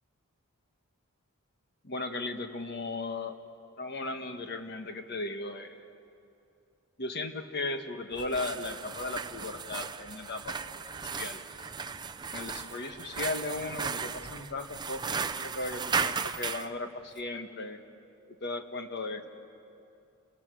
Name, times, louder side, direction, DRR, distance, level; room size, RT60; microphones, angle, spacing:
voice 1, 1.8-3.4 3.8-5.9 7.0-10.6 11.0-11.5 12.3-17.8 18.4-19.3, left 2 dB, 50° left, 6 dB, 1.4 m, -36 dB
sound 1, 8.1-16.7, right 5 dB, 20° right, 0.5 m, -36 dB
28.5 x 20.5 x 6.3 m, 2.7 s
head